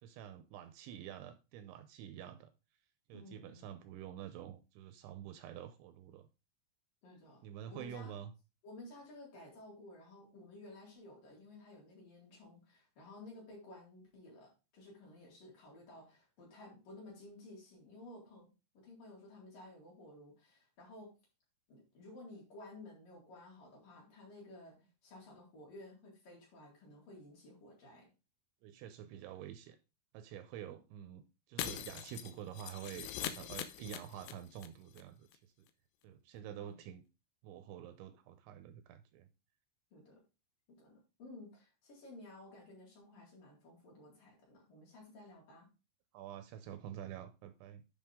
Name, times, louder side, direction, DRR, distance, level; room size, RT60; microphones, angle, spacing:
voice 1, 0.0-2.5 3.1-6.3 7.4-8.3 28.6-29.8 30.1-35.5 36.0-37.0 37.4-39.3 46.1-47.8, right 10 dB, 80° right, 2.8 m, -48 dB
voice 2, 3.1-3.7 7.0-8.1 8.6-18.5 18.7-21.1 21.7-24.8 25.0-28.1 36.6-36.8 39.9-40.2 40.8-45.7, left 2 dB, 45° left, 5.1 m, -54 dB
Shatter, 31.6-34.7 34.9-35.0 35.3-35.4, left 11 dB, 80° left, 2.7 m, -42 dB
10.0 x 5.9 x 3.6 m
omnidirectional pair, 5.6 m